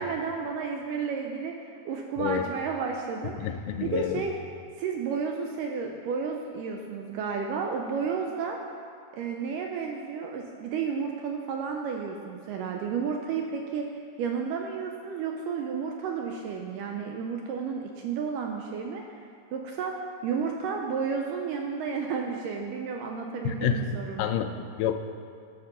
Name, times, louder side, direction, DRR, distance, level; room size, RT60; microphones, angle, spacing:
voice 1, 0.0-4.3 4.8-8.6 9.1-19.0 19.5-24.3, right 6 dB, 80° right, 2 dB, 2.0 m, -32 dB
voice 2, 3.4-4.2 23.4-25.0, left 8 dB, 80° left, 7 dB, 2.1 m, -29 dB
10.5 x 5.9 x 6.8 m, 2.3 s
omnidirectional pair, 4.2 m